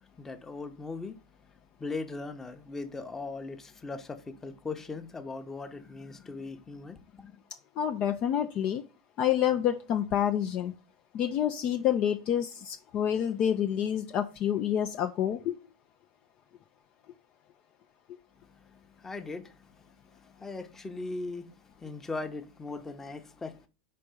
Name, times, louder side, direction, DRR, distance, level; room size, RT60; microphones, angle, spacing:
voice 1, 0.2-1.2 1.8-7.4 18.7-19.7 20.2-21.5 21.8-23.7, left 3 dB, 15° left, 0.9 m, -39 dB
voice 2, 7.8-8.8 9.2-10.7 11.1-15.6, left 10 dB, 40° left, 0.6 m, -28 dB
5.2 x 4.4 x 5.1 m
figure-of-eight pair, 85°, 3 cm